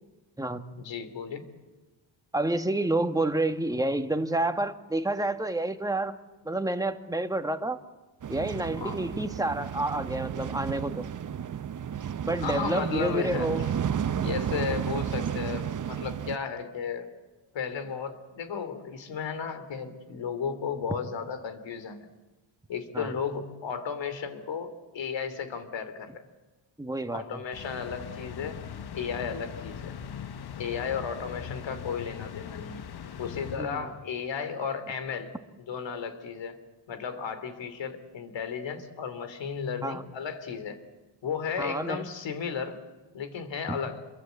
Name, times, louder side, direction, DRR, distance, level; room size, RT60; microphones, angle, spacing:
voice 1, 0.8-1.5 8.8-9.0 12.4-13.7 14.2-17.1 17.5-22.1 22.7-26.2 27.1-28.6 28.9-29.9 30.6-32.8 33.2-36.6 36.9-40.8 41.2-42.8 43.1-44.0, left 6 dB, 75° left, 10 dB, 3.2 m, -34 dB
voice 2, 2.3-6.1 6.4-7.8 8.3-11.1 12.2-13.7 22.9-23.1 26.8-27.2 33.6-33.9 39.8-40.0 41.6-42.0 43.7-43.8, right 2 dB, 10° right, 8 dB, 1.5 m, -29 dB
sound 1, 8.2-16.4, right 8 dB, 40° right, 0.9 m, -32 dB
sound 2, 27.5-34.2, left 8 dB, 55° left, 1.2 m, -41 dB
28.0 x 23.0 x 8.3 m, 1.2 s
cardioid pair, 100°, 45 cm